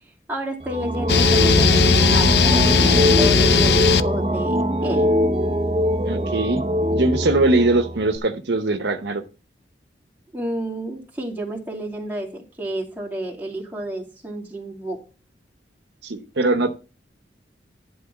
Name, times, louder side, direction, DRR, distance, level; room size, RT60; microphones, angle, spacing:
voice 1, 0.3-2.7 2.9-5.1 10.3-15.0, right 1 dB, 10° right, -3 dB, 2.5 m, -30 dB
sound 1, 0.6-8.2, equal, 35° right, 0.7 m, -21 dB
sound 2, 1.1-4.0, left 6 dB, 65° left, 0.5 m, -17 dB
voice 2, 6.0-6.6 6.9-9.2 16.0-16.8, right 2 dB, 75° right, 7 dB, 0.9 m, -21 dB
11.0 x 3.8 x 7.2 m, 0.33 s
head